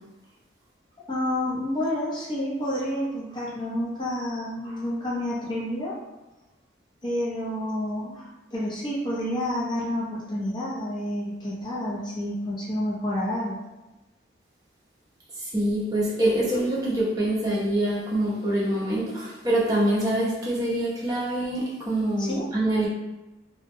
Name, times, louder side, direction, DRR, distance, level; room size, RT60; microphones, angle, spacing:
voice 1, 1.1-5.9 7.0-13.6 22.2-22.5, left 1 dB, 25° left, -7 dB, 0.5 m, -29 dB
voice 2, 15.3-22.9, right 1 dB, 20° right, -6 dB, 0.6 m, -25 dB
2.6 x 2.1 x 2.6 m, 1.0 s
head